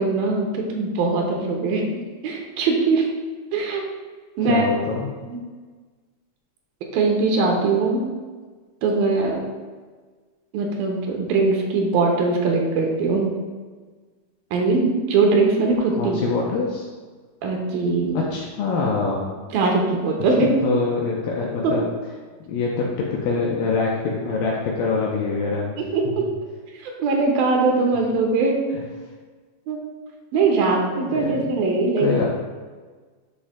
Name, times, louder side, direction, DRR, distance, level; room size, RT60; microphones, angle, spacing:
voice 1, 0.0-3.1 3.5-3.8 4.4-4.7 6.9-8.1 8.8-9.4 10.5-13.3 14.5-16.2 17.4-18.2 19.5-20.6 21.6-21.8 25.8-26.3 26.8-28.7 29.7-29.8 30.3-32.1, right 3 dB, 75° right, 1 dB, 2.3 m, -21 dB
voice 2, 4.4-5.1 15.9-16.9 18.1-19.3 20.2-21.8 22.5-26.1 31.1-31.5 32.0-32.3, left 4 dB, 75° left, -3 dB, 2.2 m, -25 dB
9.6 x 6.1 x 2.2 m, 1.4 s
omnidirectional pair, 4.7 m